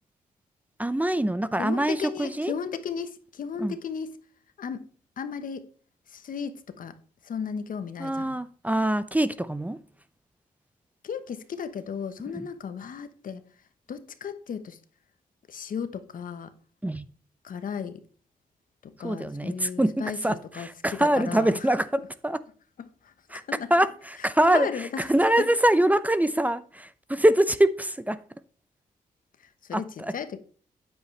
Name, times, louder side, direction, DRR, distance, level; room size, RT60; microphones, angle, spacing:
voice 1, 0.8-2.5 3.6-3.7 8.0-9.8 12.4-12.5 16.8-17.1 19.0-21.9 22.2-22.4 23.3-23.4 23.7-24.7 25.1-28.2 29.7-30.1, right 1 dB, 10° right, 0.7 m, -24 dB
voice 2, 1.6-4.1 4.6-4.9 5.2-5.7 6.1-6.9 7.2-8.4 11.0-13.4 13.9-14.8 15.5-16.5 17.4-18.0 18.8-21.7 22.0-22.1 22.8-23.1 23.5-23.7 24.2-25.1 25.4-25.5 29.7-30.4, left 6 dB, 70° left, 1.2 m, -35 dB
9.4 x 8.2 x 3.3 m
cardioid pair, 70°, 15 cm